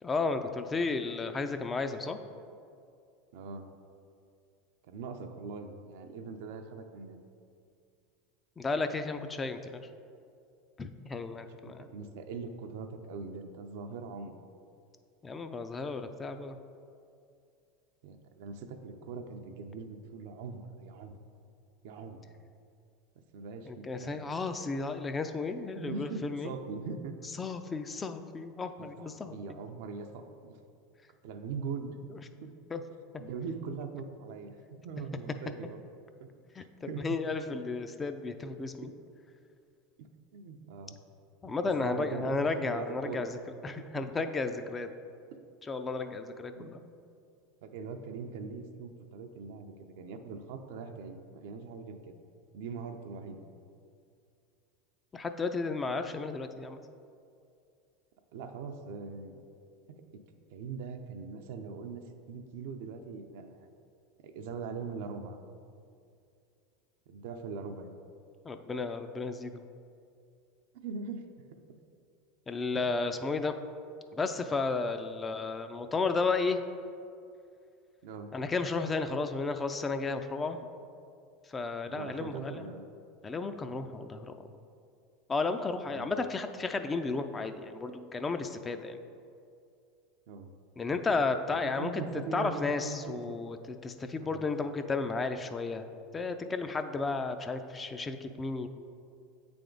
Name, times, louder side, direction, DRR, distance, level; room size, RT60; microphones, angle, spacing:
voice 1, 0.0-2.2 8.6-9.9 10.8-11.9 15.2-16.6 23.7-26.5 27.4-29.4 32.7-32.8 36.6-38.9 41.4-43.4 43.6-44.9 45.7-46.8 55.1-56.8 68.5-69.6 72.5-73.5 74.1-76.6 78.3-80.7 81.5-82.7 83.2-84.4 85.3-89.0 90.8-91.9 92.3-93.6 93.8-95.9 96.1-98.7, left 4 dB, 20° left, 8 dB, 0.4 m, -33 dB
voice 2, 3.3-3.7 4.8-7.2 11.5-14.3 18.0-21.2 21.8-22.2 23.3-24.3 25.7-27.3 28.8-30.6 31.2-32.0 32.4-32.5 33.2-34.6 34.8-35.8 36.2-36.3 36.6-37.2 40.0-40.1 40.3-41.0 41.4-43.3 43.8-43.9 46.5-46.7 47.6-52.1 52.5-53.4 58.3-59.4 59.9-60.0 60.5-63.7 64.2-65.4 67.1-67.9 70.7-71.8 78.0-78.3 81.9-82.8 85.8-86.1 90.3-90.5 91.5-93.4 94.2-94.4, right 5 dB, 70° right, 6 dB, 0.5 m, -41 dB
8.4 x 3.4 x 3.8 m, 2.4 s
hypercardioid pair, 105°, 0 cm